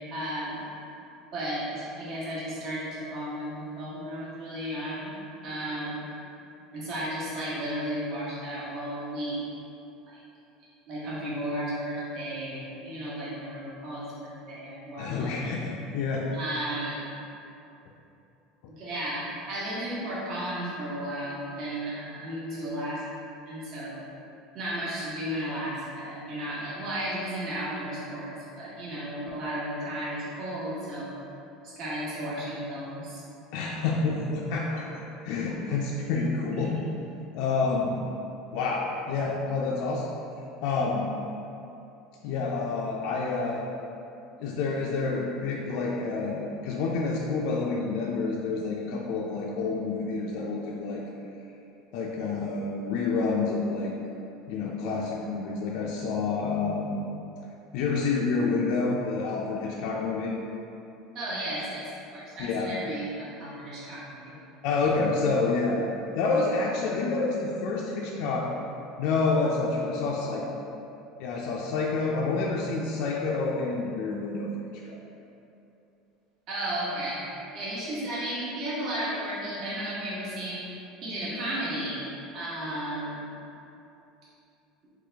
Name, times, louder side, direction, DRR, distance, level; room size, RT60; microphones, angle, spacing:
voice 1, 0.1-0.6 1.3-5.1 5.4-6.1 6.7-9.5 10.1-10.2 10.9-15.6 16.3-17.0 18.8-23.0 23.5-24.0 24.5-28.3 28.5-31.1 31.6-33.2 36.5-36.7 61.1-64.4 76.5-77.2 77.5-80.6 81.0-82.1 82.3-83.3, right 1 dB, 45° right, -8 dB, 1.1 m, -34 dB
voice 2, 15.0-16.3 33.5-35.0 35.2-36.9 37.3-38.0 38.5-40.0 40.6-41.1 42.2-43.6 44.4-51.0 51.9-53.9 54.5-57.1 57.7-60.3 62.4-62.7 64.6-65.8 66.2-68.5 69.0-70.4 71.2-74.5 74.9-75.0, left 4 dB, 65° left, -3 dB, 0.4 m, -28 dB
3.8 x 3.0 x 3.4 m, 2.8 s
cardioid pair, 145°, 0 cm